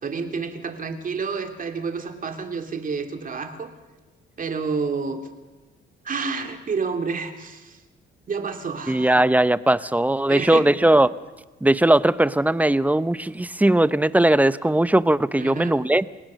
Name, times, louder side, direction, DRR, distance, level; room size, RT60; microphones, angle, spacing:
voice 1, 0.0-3.7 4.4-5.3 6.0-7.8 8.3-9.2 10.3-10.7 15.4-15.8, right 5 dB, 45° right, 5 dB, 2.7 m, -29 dB
voice 2, 8.9-11.1 11.6-16.0, right 1 dB, 10° right, 16 dB, 0.7 m, -19 dB
29.0 x 17.5 x 6.3 m, 1.2 s
cardioid pair, 90°, 20 cm